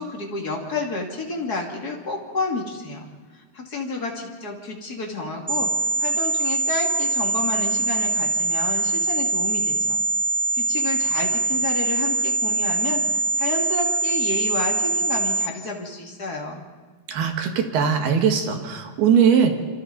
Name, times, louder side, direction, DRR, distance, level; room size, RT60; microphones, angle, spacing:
voice 1, 0.0-3.1 3.5-5.7 6.0-10.0 10.5-16.6, left 3 dB, 30° left, 0 dB, 1.9 m, -30 dB
sound 1, 5.5-15.5, right 3 dB, 15° right, 1.2 m, -23 dB
voice 2, 17.1-19.6, right 7 dB, 70° right, 4 dB, 3.5 m, -20 dB
27.0 x 27.0 x 4.0 m, 1.4 s
omnidirectional pair, 4.9 m